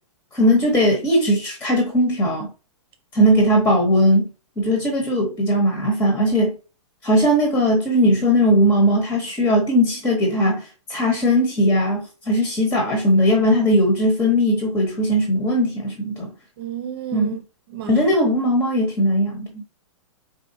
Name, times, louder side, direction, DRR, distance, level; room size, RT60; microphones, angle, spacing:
voice 1, 0.3-2.5 3.1-4.3 4.6-6.5 7.0-16.3 17.1-17.4 17.9-19.6, equal, 10° left, 1.1 m, -19 dB
voice 2, 16.6-17.4 17.7-18.1, right 9 dB, 50° right, 1.0 m, -32 dB
4.3 x 4.3 x 2.7 m
hypercardioid pair, 165°, 17 cm